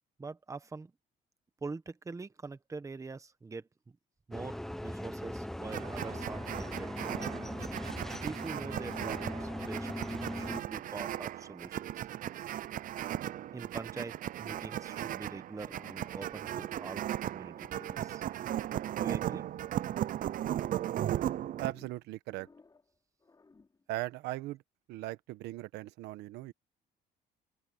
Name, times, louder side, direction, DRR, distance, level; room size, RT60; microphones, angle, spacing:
voice 1, 0.2-0.9 1.6-3.7 4.3-7.1 8.2-9.9 10.2-12.1 13.5-18.3 19.0-19.5, right 4 dB, 20° right, 1.4 m, -44 dB
sound 1, 4.3-10.6, left 1 dB, ahead, 0.6 m, -39 dB
sound 2, 5.7-21.7, right 12 dB, 55° right, 0.6 m, -37 dB
sound 3, 14.5-15.2 15.5-17.1 17.5-19.1 19.4-21.1 21.3-22.9 23.2-23.8, left 4 dB, 20° left, 5.4 m, -59 dB
voice 2, 21.6-22.5 23.9-24.6 24.9-26.5, right 16 dB, 85° right, 1.2 m, -39 dB
open air
cardioid pair, 110°, 17 cm